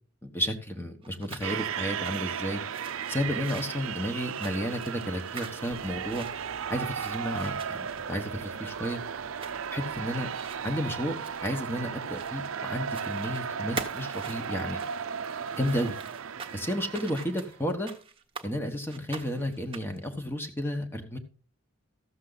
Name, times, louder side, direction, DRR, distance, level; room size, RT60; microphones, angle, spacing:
voice 1, 0.2-2.6 3.1-6.3 6.7-9.0 9.7-10.3 10.6-11.2 11.4-14.8 15.5-15.9 16.5-17.9 18.4-21.2, equal, 10° left, 5 dB, 1.1 m, -32 dB
sound 1, 1.0-12.6 12.9-13.4 13.8-18.5 18.9-20.1, right 5 dB, 25° right, 1.0 m, -44 dB
sound 2, 1.4-17.6, right 7 dB, 70° right, 0.5 m, -35 dB
sound 3, 5.7-12.6, right 1 dB, 65° left, 3.0 m, -56 dB
14.0 x 7.3 x 3.9 m, 0.38 s
head